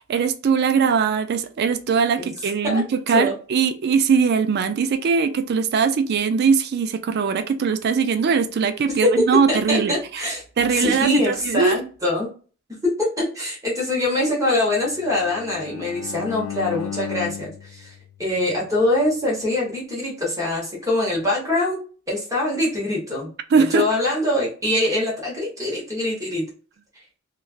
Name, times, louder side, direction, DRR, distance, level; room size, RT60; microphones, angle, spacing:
voice 1, 0.0-10.2 10.6-11.8 23.5-23.9, right 6 dB, 55° right, 0.4 m, -21 dB
voice 2, 2.6-3.3 9.0-10.4 10.7-12.3 12.8-17.9 18.2-21.8 22.1-26.4, left 1 dB, 15° right, 1.1 m, -23 dB
Bowed string instrument, 14.7-18.9, left 9 dB, 80° left, 0.3 m, -35 dB
3.2 x 2.3 x 2.4 m
head